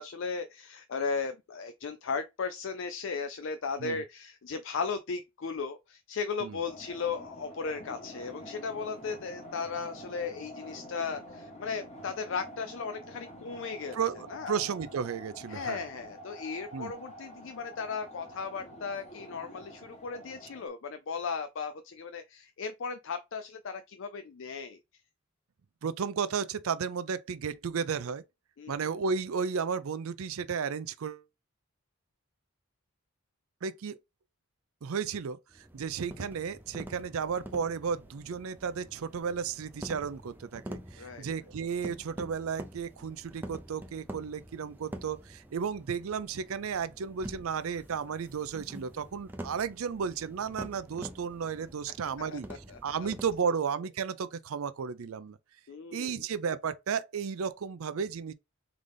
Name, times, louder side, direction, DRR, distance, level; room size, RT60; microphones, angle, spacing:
voice 1, 0.0-14.0 14.3-14.6 15.5-24.8 28.6-28.7 41.0-41.2 52.3-53.1 55.7-56.3, left 5 dB, 55° left, 0.4 m, -36 dB
sound 1, 6.6-20.7, equal, 30° left, 1.1 m, -47 dB
voice 2, 13.9-15.8 16.7-16.9 25.8-28.2 28.7-31.2 33.6-34.0 34.8-55.4 55.9-58.3, right 6 dB, 70° right, 0.4 m, -33 dB
sound 2, 35.5-53.4, right 1 dB, 10° right, 0.5 m, -46 dB
3.9 x 3.7 x 3.3 m
head